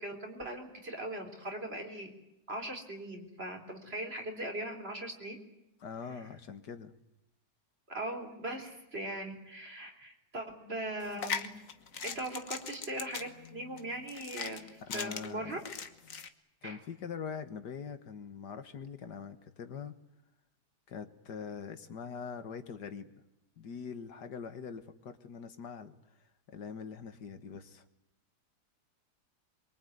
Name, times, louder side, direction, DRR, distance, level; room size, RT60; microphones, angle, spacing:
voice 1, 0.0-2.1 2.5-5.4 6.2-6.3 7.9-11.6 12.0-15.6 16.6-16.8, right 1 dB, 35° right, 4 dB, 4.0 m, -40 dB
voice 2, 5.8-6.9 14.9-15.6 16.6-19.9 20.9-23.1 23.6-26.0 26.5-27.8, left 6 dB, 85° left, 9 dB, 2.1 m, -43 dB
sound 1, 11.0-16.3, left 6 dB, 55° left, 1.6 m, -40 dB
23.5 x 23.5 x 9.4 m, 0.88 s
omnidirectional pair, 1.8 m